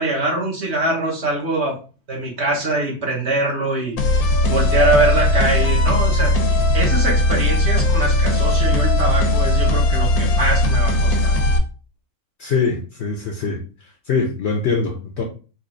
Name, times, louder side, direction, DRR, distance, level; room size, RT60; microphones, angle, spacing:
voice 1, 0.0-1.8 2.1-4.0 4.5-6.3 6.7-10.9 11.2-11.3, right 2 dB, 50° right, 1.4 m, -22 dB
sound 1, 4.0-11.6, left 1 dB, 75° left, 1.2 m, -18 dB
voice 2, 12.4-13.6 14.1-15.2, left 4 dB, 60° left, 0.8 m, -22 dB
4.3 x 2.7 x 2.6 m
omnidirectional pair, 1.6 m